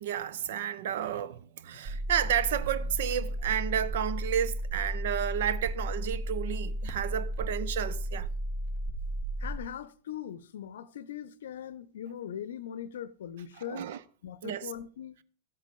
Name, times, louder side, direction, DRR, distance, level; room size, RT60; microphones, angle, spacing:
voice 1, 0.0-8.3 13.7-14.0 14.4-14.7, right 9 dB, 55° right, 0.7 m, -31 dB
sound 1, 1.9-9.6, right 1 dB, 35° right, 1.3 m, -34 dB
voice 2, 9.4-13.9 14.2-15.2, left 10 dB, 60° left, 0.7 m, -40 dB
13.5 x 8.2 x 5.1 m
figure-of-eight pair, 90°, 0 cm